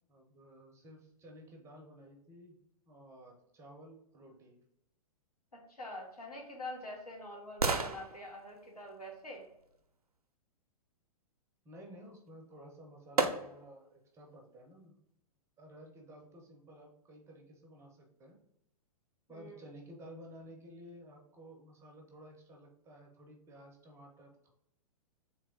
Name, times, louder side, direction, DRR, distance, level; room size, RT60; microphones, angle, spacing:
voice 1, 0.0-2.6 2.9-4.6 11.6-15.0 15.6-18.4 19.3-24.5, equal, 15° right, 1 dB, 0.6 m, -54 dB
voice 2, 5.7-9.4 19.3-19.6, left 1 dB, 80° left, -1 dB, 1.3 m, -45 dB
sound 1, 6.0-10.2 12.3-12.4 13.2-13.9 14.3-14.4, right 3 dB, 75° right, 0.5 m, -37 dB
3.3 x 3.1 x 3.7 m, 0.79 s
figure-of-eight pair, 110°, 19 cm